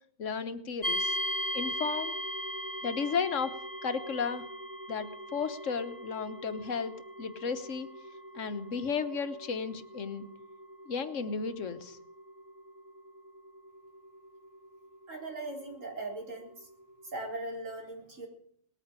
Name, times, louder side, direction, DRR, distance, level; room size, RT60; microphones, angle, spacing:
voice 1, 0.2-1.1 1.5-2.1 2.8-3.5 3.8-4.4 4.9-6.9 7.2-7.9 8.3-10.3 10.9-11.9, left 5 dB, 75° left, 11 dB, 1.4 m, -33 dB
sound 1, 0.8-15.7, equal, 30° left, 2.9 m, -39 dB
voice 2, 15.1-16.5 17.1-18.3, right 2 dB, 80° right, 0 dB, 4.2 m, -39 dB
19.5 x 9.0 x 8.2 m, 0.68 s
omnidirectional pair, 1.3 m